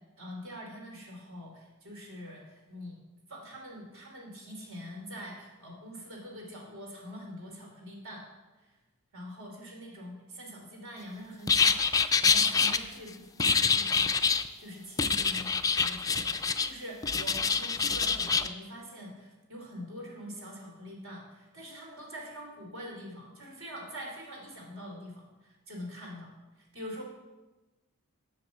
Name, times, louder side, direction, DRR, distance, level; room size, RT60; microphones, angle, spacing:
voice 1, 0.2-3.0 3.3-8.2 8.6-8.7 9.1-13.1 13.4-14.1 14.6-15.4 15.8-27.0, equal, 60° right, 0 dB, 2.9 m, -44 dB
sound 1, 11.5-12.8 13.4-14.5 15.0-16.7 17.0-18.5, left 5 dB, 15° left, 0.3 m, -26 dB
7.9 x 7.0 x 7.0 m, 1.1 s
head